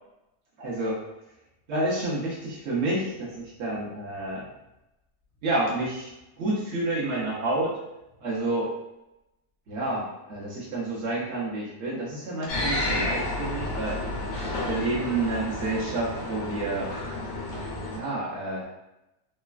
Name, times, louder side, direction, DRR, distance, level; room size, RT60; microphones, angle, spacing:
voice 1, 0.6-1.0 1.7-4.4 5.4-6.1 6.4-7.8 8.2-8.7 9.7-14.0 14.7-16.9 17.9-18.6, right 2 dB, 55° right, -6 dB, 0.8 m, -29 dB
sound 1, 12.5-18.0, left 2 dB, 70° left, 0.7 m, -31 dB
3.1 x 2.2 x 2.3 m, 0.93 s
omnidirectional pair, 1.8 m